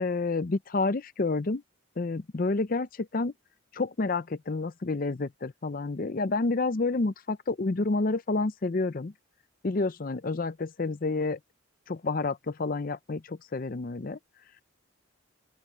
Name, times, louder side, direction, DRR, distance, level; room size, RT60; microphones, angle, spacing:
voice 1, 0.0-1.6 2.0-3.3 3.7-9.1 9.6-11.4 11.9-14.2, left 3 dB, 40° left, 0.5 m, -29 dB
open air
head